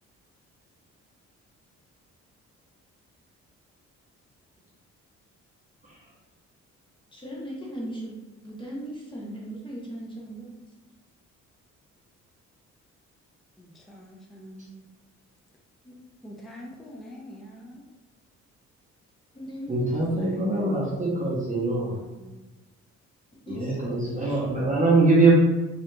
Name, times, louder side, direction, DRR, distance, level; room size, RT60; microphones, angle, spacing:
voice 1, 7.1-8.2 8.4-10.5 15.8-15.9 19.3-19.9 23.5-24.0 24.3-24.4, equal, 15° left, -4 dB, 0.8 m, -38 dB
voice 2, 13.6-14.8 16.2-17.8 20.2-21.0 21.9-22.4, equal, ahead, -2 dB, 0.3 m, -45 dB
voice 3, 19.7-21.9 23.5-25.3, right 3 dB, 25° right, -6 dB, 0.7 m, -22 dB
2.6 x 2.4 x 2.2 m, 1.1 s
cardioid pair, 90°, 30 cm